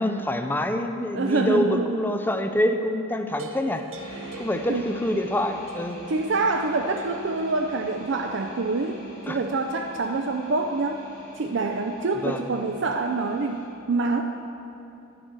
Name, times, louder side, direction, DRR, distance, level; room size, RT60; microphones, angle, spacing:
voice 1, 0.0-3.9 4.4-6.0 9.3-9.4 12.2-12.4, left 1 dB, 10° left, 7 dB, 0.5 m, -26 dB
voice 2, 1.1-2.0 4.1-4.4 4.7-4.9 6.1-11.1 11.4-14.2, right 3 dB, 60° right, 3 dB, 0.5 m, -26 dB
sound 1, 3.4-5.4 5.7-6.1 7.0-7.4, right 1 dB, 85° right, 1.0 m, -42 dB
sound 2, 3.9-13.7, right 1 dB, 55° left, 2.6 m, -44 dB
11.0 x 10.5 x 4.6 m, 2.7 s
head